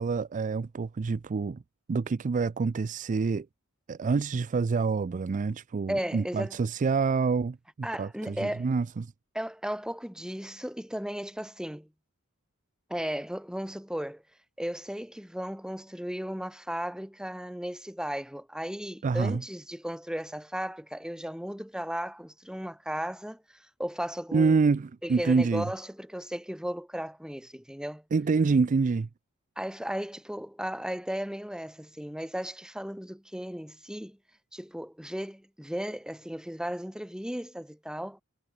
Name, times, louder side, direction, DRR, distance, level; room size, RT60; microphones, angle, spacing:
voice 1, 0.0-1.6 1.9-3.5 3.9-7.6 8.0-9.1 19.0-19.4 24.3-25.7 28.1-29.1, right 4 dB, 35° right, 0.4 m, -26 dB
voice 2, 5.9-6.6 7.8-8.7 9.3-11.9 12.9-14.2 14.6-24.7 25.0-28.0 29.6-34.2 34.5-38.2, equal, 5° right, 3.2 m, -35 dB
head